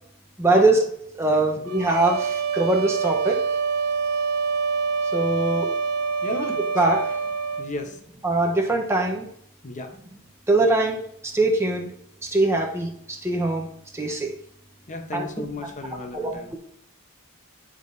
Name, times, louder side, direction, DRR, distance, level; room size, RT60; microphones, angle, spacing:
voice 1, 0.4-0.8 1.2-3.4 5.1-5.7 6.3-7.2 8.2-9.3 10.5-11.9 12.2-13.7 13.9-14.3 15.1-15.4 16.1-16.6, right 2 dB, 10° right, 0.9 m, -22 dB
sound 1, 1.7-7.7, right 5 dB, 70° right, 0.7 m, -26 dB
voice 2, 7.6-8.0 9.6-9.9 14.9-16.6, left 2 dB, 35° left, 0.9 m, -34 dB
9.8 x 5.1 x 2.7 m
head